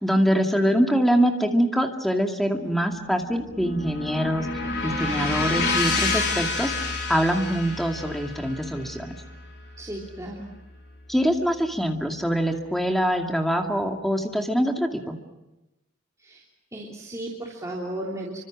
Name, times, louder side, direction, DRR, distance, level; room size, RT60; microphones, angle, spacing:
voice 1, 0.0-4.5 4.8-6.7 7.1-9.1 11.1-15.2, equal, ahead, 2 dB, 2.2 m, -24 dB
sound 1, 2.9-11.2, left 3 dB, 50° left, 5.0 m, -29 dB
voice 2, 9.8-10.5 16.2-16.4 16.7-18.4, right 1 dB, 15° right, -4 dB, 3.3 m, -35 dB
29.5 x 25.0 x 6.3 m, 0.98 s
head